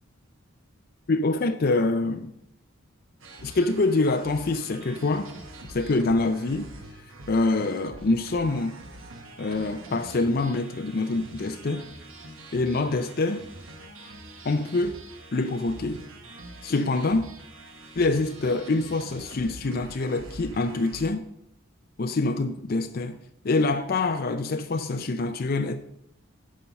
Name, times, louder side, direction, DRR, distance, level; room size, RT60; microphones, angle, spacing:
voice 1, 1.1-2.3 3.4-5.3 5.7-6.7 7.3-8.8 9.4-11.9 12.5-13.4 14.4-15.0 15.3-16.0 16.6-17.3 18.0-21.2 22.0-23.2 23.4-25.8, left 3 dB, 45° left, 0.5 m, -25 dB
sound 1, 3.2-21.1, right 1 dB, 75° right, 1.2 m, -45 dB
10.0 x 5.5 x 5.2 m
head